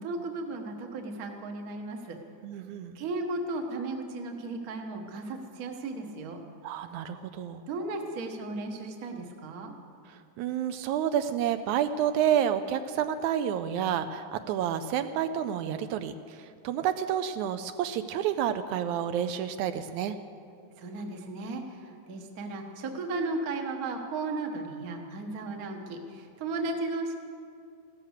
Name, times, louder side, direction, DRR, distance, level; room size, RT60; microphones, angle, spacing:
voice 1, 0.0-2.2 2.9-6.4 7.7-9.7 20.8-27.2, right 2 dB, 50° right, 3 dB, 1.1 m, -35 dB
voice 2, 2.4-3.0 6.6-7.6 10.4-20.2, right 9 dB, 80° right, 10 dB, 1.8 m, -29 dB
16.5 x 13.5 x 6.5 m, 2.4 s
omnidirectional pair, 3.5 m